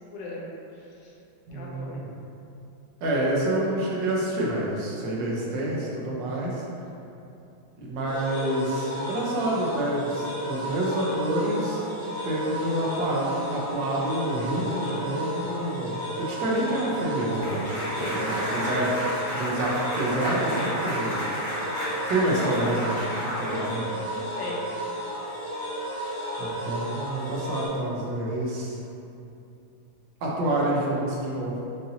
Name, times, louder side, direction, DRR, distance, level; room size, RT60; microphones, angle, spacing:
voice 1, 0.1-0.5 1.0-1.1 1.5-2.0 23.4-24.7, left 1 dB, 70° left, -3 dB, 1.2 m, -38 dB
voice 2, 1.5-2.1 3.0-6.6 7.8-11.8 12.2-18.9 19.3-21.1 22.1-23.1 23.4-23.8 26.4-28.8 30.2-31.6, right 1 dB, 65° right, -4 dB, 1.3 m, -28 dB
sinthe max, 8.1-27.7, equal, 85° left, 2.1 m, -33 dB
sound 1, 17.3-24.1, equal, 40° left, 1.9 m, -32 dB
5.5 x 2.6 x 2.7 m, 2.8 s
omnidirectional pair, 2.3 m